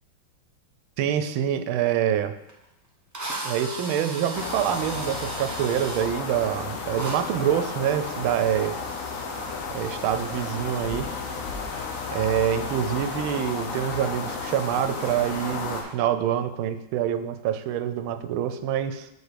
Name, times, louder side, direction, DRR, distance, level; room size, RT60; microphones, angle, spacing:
voice 1, 1.0-2.4 3.4-8.8 9.7-11.2 12.1-19.1, right 10 dB, 90° right, 11 dB, 1.4 m, -26 dB
Drill, 2.5-2.6 3.1-6.1 6.9-7.2, right 2 dB, 30° right, 0.3 m, -35 dB
sound 1, 4.3-15.8, left 4 dB, 55° left, 1.0 m, -33 dB
6.7 x 4.5 x 5.0 m, 0.87 s
omnidirectional pair, 2.2 m